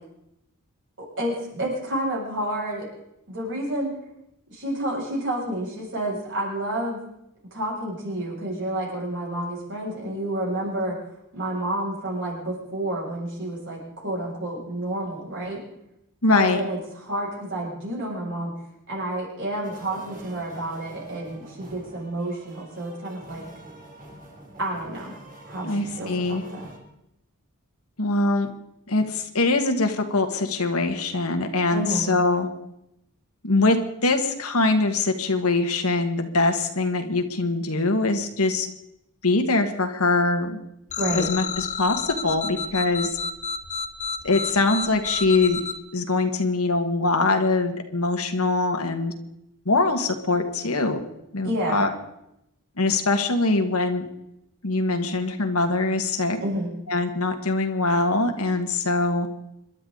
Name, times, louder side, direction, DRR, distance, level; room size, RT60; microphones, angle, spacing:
voice 1, 1.2-2.9 3.3-3.9 4.5-7.0 7.5-11.0 11.3-15.6 16.3-18.5 18.9-23.4 24.6-25.1 25.5-26.7 31.7-32.1 41.0-41.3 51.4-51.8 56.4-56.7, right 1 dB, 55° right, -4 dB, 7.3 m, -29 dB
voice 2, 16.2-16.6 25.6-26.4 28.0-28.5 28.9-32.5 33.4-33.8 34.0-38.7 39.2-40.6 41.1-43.2 44.2-45.6 45.9-49.1 49.7-51.0 51.3-51.9 52.8-54.1 54.6-56.4 56.9-59.3, left 3 dB, 75° left, 5 dB, 1.9 m, -23 dB
sound 1, 19.6-26.8, right 2 dB, 40° right, 3.4 m, -46 dB
sound 2, 40.9-45.7, left 5 dB, 35° left, 1.1 m, -30 dB
27.0 x 12.0 x 4.0 m, 0.83 s
head